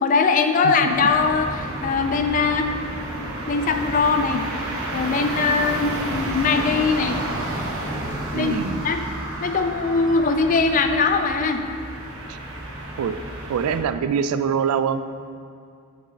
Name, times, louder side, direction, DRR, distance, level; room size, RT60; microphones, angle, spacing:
voice 1, 0.0-2.7 3.5-4.5 4.9-7.2 8.3-8.5 8.8-9.0 9.4-11.6, left 4 dB, 35° left, 6 dB, 0.3 m, -21 dB
voice 2, 0.6-1.1 8.3-8.9 12.3-12.4 13.0-13.2 13.5-15.1, right 7 dB, 90° right, 11 dB, 0.3 m, -24 dB
sound 1, 0.9-13.8, right 1 dB, 75° right, 0.9 m, -31 dB
sound 2, 6.1-11.8, left 1 dB, 55° left, 1.0 m, -40 dB
6.0 x 4.0 x 5.1 m, 2.3 s
head